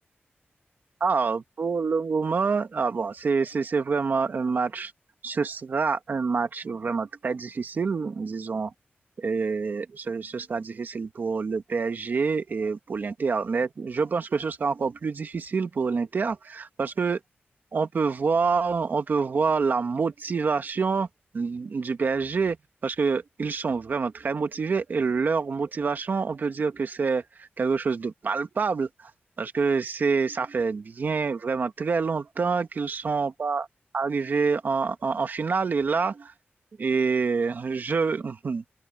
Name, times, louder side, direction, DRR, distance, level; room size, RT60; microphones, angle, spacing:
voice 1, 1.0-4.9 5.2-8.7 9.2-17.2 17.7-21.1 21.3-22.6 22.8-29.1 29.4-33.7 33.9-36.3 36.8-38.6, right 5 dB, 50° right, 1.6 m, -27 dB
open air
wide cardioid pair, 175°, 4 cm